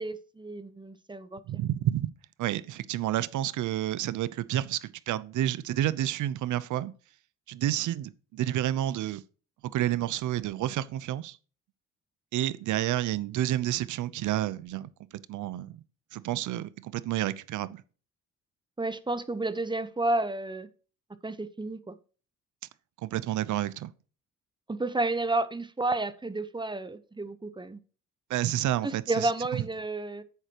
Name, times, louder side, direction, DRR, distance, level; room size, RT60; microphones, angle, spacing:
voice 1, 0.0-1.4 18.8-20.7 21.2-21.9 24.7-27.8 28.8-30.2, right 2 dB, 15° right, 0.9 m, -31 dB
voice 2, 1.5-2.1 2.4-6.9 7.5-9.2 9.6-11.4 12.3-14.9 15.3-15.8 16.1-17.8 23.0-23.9 28.3-29.6, right 13 dB, 75° right, 0.7 m, -30 dB
10.5 x 8.1 x 3.0 m
cardioid pair, 90°, 30 cm